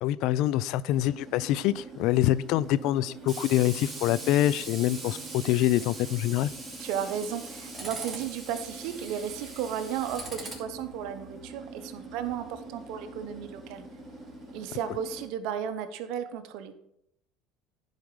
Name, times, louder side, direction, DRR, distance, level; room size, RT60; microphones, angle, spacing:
voice 1, 0.0-6.5 14.9-15.0, left 14 dB, 65° left, 0.3 m, -25 dB
Tools, 0.9-15.3, right 3 dB, 15° right, 2.7 m, -42 dB
voice 2, 6.8-13.8 14.5-16.8, right 9 dB, 70° right, 0.9 m, -34 dB
10.5 x 5.0 x 4.8 m
supercardioid pair, 105°, 0 cm